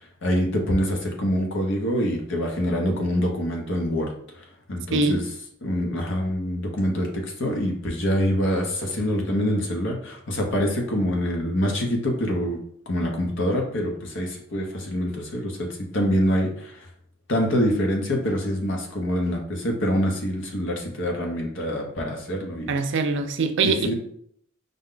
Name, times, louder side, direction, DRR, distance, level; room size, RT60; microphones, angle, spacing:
voice 1, 0.2-5.2 5.6-12.6 12.9-16.9 17.3-22.7 23.6-23.9, equal, 60° left, 1.0 m, -25 dB
voice 2, 4.9-5.2 22.7-23.9, right 3 dB, 60° right, 0.4 m, -23 dB
5.2 x 2.3 x 3.8 m
head